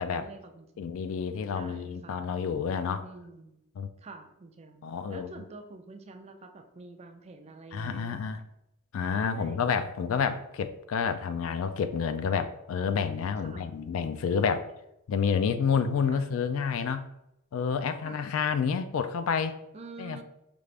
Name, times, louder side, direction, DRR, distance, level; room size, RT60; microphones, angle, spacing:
voice 1, 0.1-0.9 1.5-2.3 3.0-3.7 4.0-8.4 9.3-9.6 13.3-13.6 16.1-16.3 18.0-18.3 19.7-20.2, right 3 dB, 30° right, 5 dB, 0.4 m, -47 dB
voice 2, 0.8-3.0 3.8-3.9 4.8-5.3 7.7-8.4 8.9-14.7 15.1-17.1 17.5-19.6 20.0-20.2, left 6 dB, 70° left, 10 dB, 0.3 m, -29 dB
5.0 x 2.5 x 3.2 m, 0.83 s
head